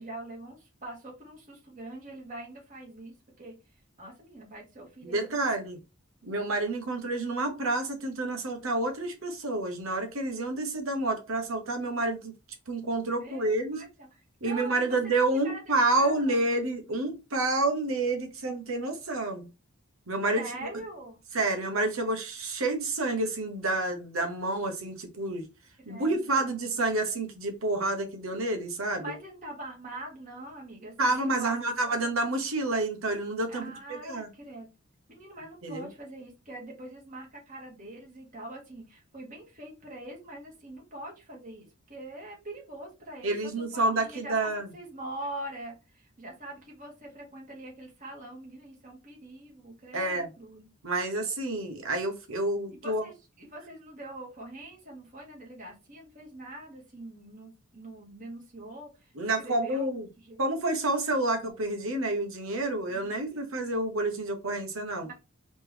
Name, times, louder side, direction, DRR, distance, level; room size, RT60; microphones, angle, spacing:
voice 1, 0.0-3.6 4.0-5.6 13.1-14.1 14.4-16.4 20.3-21.2 25.9-26.5 29.0-31.9 33.5-34.7 35.1-50.7 52.7-59.1 59.4-60.4 62.9-63.1 65.0-65.1, right 1 dB, 40° right, 2.0 m, -43 dB
voice 2, 5.0-5.8 6.2-12.3 12.7-13.8 14.4-19.5 20.1-20.7 21.3-25.5 25.9-29.1 31.0-33.6 33.9-34.3 35.6-35.9 43.2-44.7 49.9-50.3 50.8-53.0 59.1-60.1 60.4-65.1, right 2 dB, 85° right, 1.2 m, -29 dB
4.2 x 3.1 x 3.5 m
head